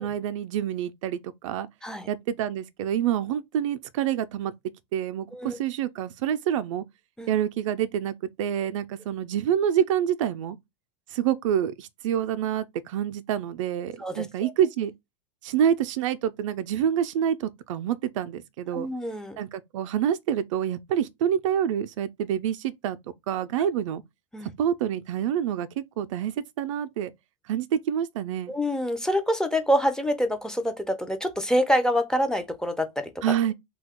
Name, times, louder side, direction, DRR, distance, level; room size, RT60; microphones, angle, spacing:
voice 1, 0.0-1.7 2.1-4.5 4.9-6.8 7.3-10.6 11.1-14.9 15.4-18.9 19.4-23.0 23.3-24.0 24.4-26.3 26.6-27.1 27.5-28.5 33.2-33.5, right 9 dB, 75° right, 0.4 m, -27 dB
voice 2, 14.0-14.5 18.7-19.4 24.3-24.5 28.5-33.1, equal, 5° left, 0.5 m, -26 dB
2.8 x 2.2 x 3.5 m
hypercardioid pair, 115°, 16 cm